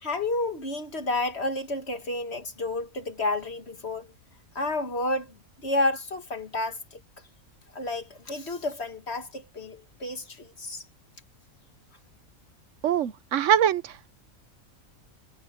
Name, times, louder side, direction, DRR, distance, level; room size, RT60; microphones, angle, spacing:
voice 1, 0.0-4.1 4.6-7.0 7.7-10.8, left 2 dB, 50° left, 2.2 m, -30 dB
voice 2, 12.8-14.1, right 10 dB, 65° right, 1.1 m, -23 dB
omnidirectional pair, 1.5 m